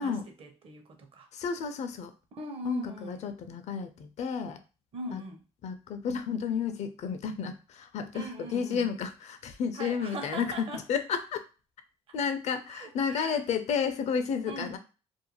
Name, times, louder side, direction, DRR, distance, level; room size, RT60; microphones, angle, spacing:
voice 1, 0.0-1.3 2.3-3.3 4.9-5.4 8.1-8.9 9.7-10.9 12.7-13.4 14.5-14.8, right 2 dB, 45° right, 0.7 m, -41 dB
voice 2, 1.3-2.1 2.6-4.6 5.1-5.2 5.6-11.4 12.1-14.8, left 6 dB, 65° left, 0.5 m, -32 dB
2.5 x 2.2 x 2.9 m
cardioid pair, 105°, 12 cm